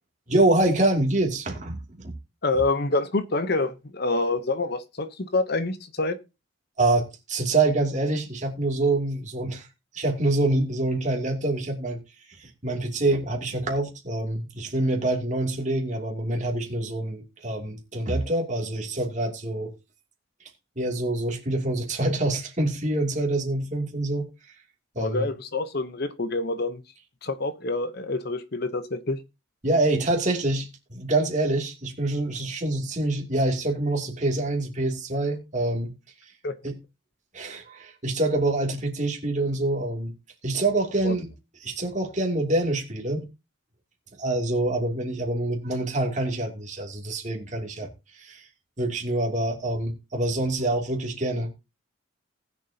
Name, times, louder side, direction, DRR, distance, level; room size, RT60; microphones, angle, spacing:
voice 1, 0.3-1.8 2.0-2.2 6.8-9.7 9.9-12.0 12.3-19.7 20.8-24.3 24.9-25.3 29.6-35.9 36.2-36.3 36.6-36.8 37.3-40.1 40.4-41.3 41.6-43.3 44.2-48.5 48.8-51.5, right 2 dB, 35° right, 2.6 m, -26 dB
voice 2, 2.4-6.2 25.0-26.8 27.2-29.2 36.4-36.5 41.0-41.2, left 2 dB, 50° left, 0.9 m, -27 dB
19.0 x 7.2 x 2.8 m
head